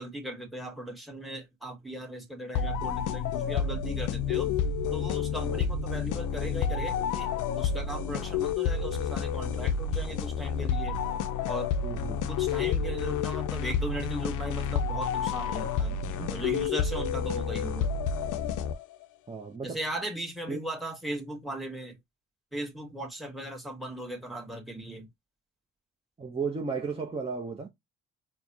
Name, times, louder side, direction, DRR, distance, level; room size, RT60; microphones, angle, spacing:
voice 1, 0.0-4.5 4.9-7.3 7.6-11.0 11.5-11.7 12.3-16.0 16.3-17.9 19.6-22.0 22.5-25.1, right 1 dB, ahead, 1.5 m, -38 dB
sound 1, 2.5-19.1, left 6 dB, 80° left, 0.5 m, -30 dB
voice 2, 11.8-12.3 16.0-16.3 19.3-19.8 20.5-20.6 26.2-27.7, right 4 dB, 20° right, 0.8 m, -35 dB
4.5 x 2.3 x 2.7 m
cardioid pair, 90°, 30 cm